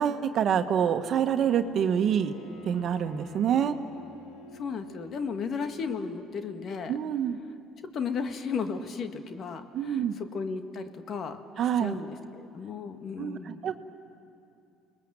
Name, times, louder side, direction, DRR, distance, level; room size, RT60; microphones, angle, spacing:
voice 1, 0.0-2.3 2.6-3.8 6.9-7.4 9.7-10.2 11.6-12.0 13.2-13.7, right 8 dB, 55° right, 8 dB, 1.4 m, -26 dB
Bowed string instrument, 1.6-6.4, left 3 dB, 75° left, 3.1 m, -50 dB
voice 2, 4.5-7.0 7.9-11.4 11.8-13.7, left 5 dB, 55° left, 7 dB, 1.8 m, -34 dB
30.0 x 20.0 x 7.7 m, 2.5 s
hypercardioid pair, 65°, 0 cm